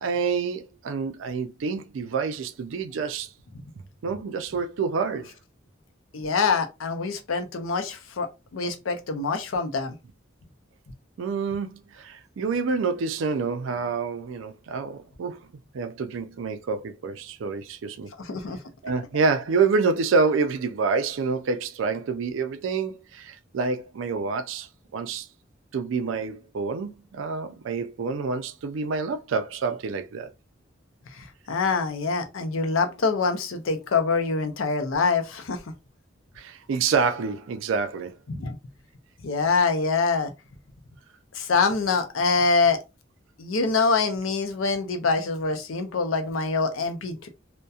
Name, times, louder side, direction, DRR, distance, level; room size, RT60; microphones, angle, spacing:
voice 1, 0.0-3.3 4.0-5.3 11.2-15.4 15.7-18.1 18.8-25.3 25.7-30.3 36.4-38.2, right 5 dB, 75° right, 0.4 m, -27 dB
voice 2, 6.1-8.3 8.5-9.9 18.2-18.6 31.1-35.6 38.3-38.6 39.2-40.3 41.3-42.8 43.4-47.3, left 4 dB, 90° left, 0.6 m, -25 dB
2.7 x 2.2 x 2.3 m
head